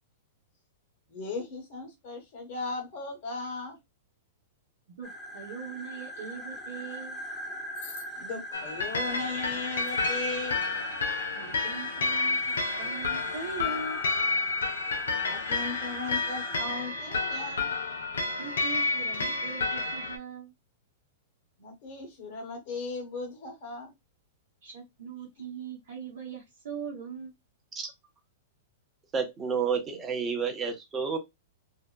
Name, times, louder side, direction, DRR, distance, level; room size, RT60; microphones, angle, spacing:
voice 1, 1.1-3.8 7.8-10.6 15.2-17.7 21.6-23.9, left 3 dB, 50° left, 1.2 m, -37 dB
sound 1, 5.0-16.6, equal, 15° left, 0.8 m, -41 dB
voice 2, 5.0-7.2 11.3-14.0 18.4-20.5 24.6-27.3, right 5 dB, 65° right, 0.8 m, -41 dB
sound 2, 8.5-20.2, left 3 dB, 80° left, 0.7 m, -30 dB
voice 3, 29.1-31.2, right 6 dB, 25° right, 0.8 m, -30 dB
2.7 x 2.1 x 2.2 m
hypercardioid pair, 110°, 0 cm